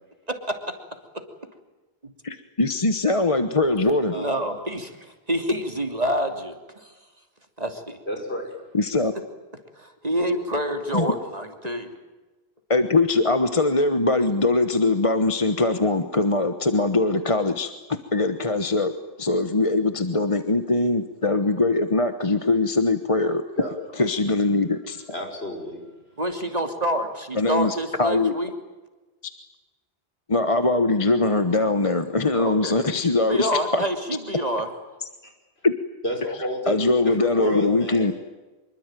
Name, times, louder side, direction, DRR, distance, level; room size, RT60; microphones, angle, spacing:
voice 1, 0.3-0.7 4.1-6.9 7.6-8.0 9.8-12.0 26.2-28.5 32.3-32.7 33.2-34.7, equal, 40° right, 5 dB, 3.1 m, -27 dB
voice 2, 2.2-4.1 8.7-9.1 10.9-11.0 12.7-17.7 18.1-18.9 19.2-23.4 24.0-25.0 27.3-28.3 30.3-33.8 35.6-35.7 36.7-38.1, left 2 dB, 30° left, 9 dB, 1.2 m, -22 dB
voice 3, 4.1-4.4 8.1-8.6 23.6-23.7 25.1-25.8 35.2-35.3 36.0-36.8 37.2-38.1, equal, 80° left, 3 dB, 5.9 m, -30 dB
26.0 x 23.0 x 9.2 m, 1.2 s
omnidirectional pair, 1.0 m